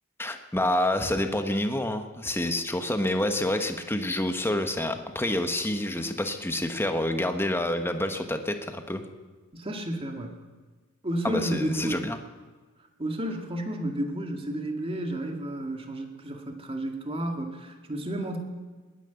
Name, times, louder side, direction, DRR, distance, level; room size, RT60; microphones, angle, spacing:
voice 1, 0.2-9.0 11.2-12.2, left 1 dB, 10° left, 6 dB, 1.2 m, -28 dB
voice 2, 9.5-10.4 11.0-12.1 13.0-18.4, right 1 dB, 25° right, 3 dB, 2.1 m, -31 dB
20.0 x 10.5 x 7.0 m, 1.3 s
head